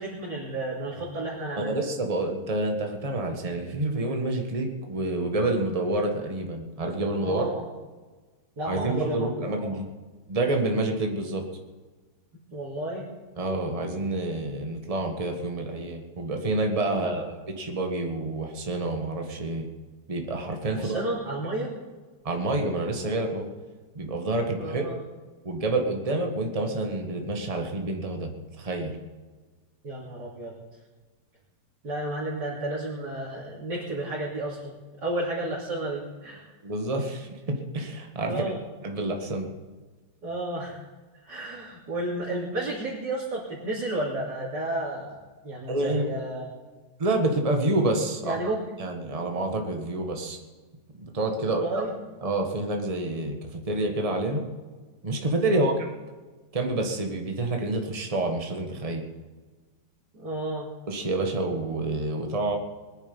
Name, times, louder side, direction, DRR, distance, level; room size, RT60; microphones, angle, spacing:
voice 1, 0.0-1.8 7.2-7.6 8.6-9.7 12.5-13.1 16.9-17.2 20.7-21.7 24.6-25.0 29.8-30.5 31.8-36.4 38.2-38.6 40.2-40.9 41.2-45.2 45.4-46.5 48.2-48.6 51.4-51.9 55.4-55.8 60.1-60.7, right 1 dB, 80° right, -7 dB, 3.6 m, -32 dB
voice 2, 1.6-7.4 8.6-9.9 10.3-11.4 13.4-19.7 20.1-21.0 22.2-23.4 23.9-24.8 25.4-28.3 28.6-28.9 36.6-38.5 38.8-39.5 45.7-46.0 47.0-48.4 48.8-50.4 50.9-51.6 52.2-54.5 55.0-55.9 56.5-59.0 60.9-62.6, right 2 dB, 20° right, 3 dB, 1.5 m, -28 dB
20.5 x 10.5 x 5.4 m, 1.3 s
omnidirectional pair, 1.8 m